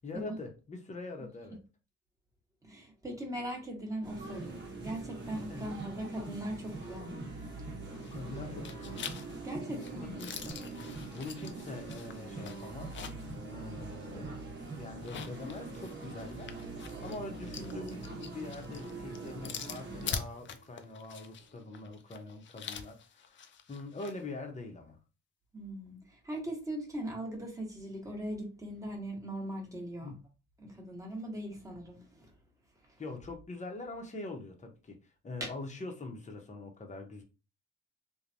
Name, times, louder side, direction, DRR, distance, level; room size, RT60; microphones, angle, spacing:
voice 1, 0.0-1.6 5.5-5.7 8.1-9.0 9.7-10.6 11.1-13.0 13.5-14.3 14.7-25.0 30.0-30.2 33.0-37.2, left 2 dB, 25° left, 0.8 m, -44 dB
voice 2, 2.6-7.3 9.4-10.1 25.5-30.1 30.6-32.3 35.4-35.5, right 1 dB, 10° right, 1.1 m, -40 dB
sound 1, 4.0-20.2, right 3 dB, 35° right, 1.1 m, -43 dB
sound 2, 7.8-21.9, right 4 dB, 90° right, 0.7 m, -55 dB
sound 3, 7.9-8.3 8.6-13.4 13.7-13.8 14.9-24.2, left 7 dB, 40° left, 0.4 m, -44 dB
3.2 x 2.2 x 2.6 m
cardioid pair, 90°, 30 cm